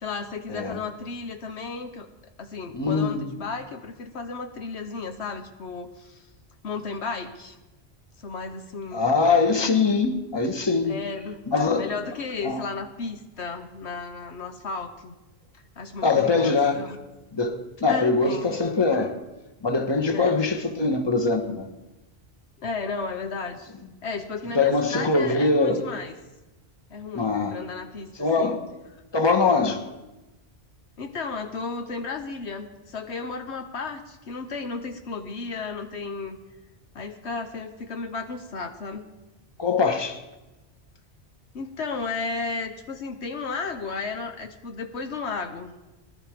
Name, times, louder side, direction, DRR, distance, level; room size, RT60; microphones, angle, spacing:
voice 1, 0.0-2.1 2.4-6.2 6.6-7.6 8.2-9.0 10.8-11.4 11.7-15.2 15.8-17.0 17.9-18.7 20.1-20.4 22.6-23.7 24.0-26.2 26.9-28.6 31.0-36.4 36.9-39.0 41.5-45.8, left 4 dB, 75° left, 1.3 m, -34 dB
voice 2, 2.7-3.3 8.9-11.0 11.5-11.9 12.4-12.6 16.0-16.8 17.3-19.2 19.6-21.7 24.5-26.0 27.1-27.6 28.2-28.6 29.1-29.8 39.6-40.2, left 4 dB, 25° left, 1.3 m, -22 dB
18.0 x 12.0 x 5.1 m
omnidirectional pair, 1.2 m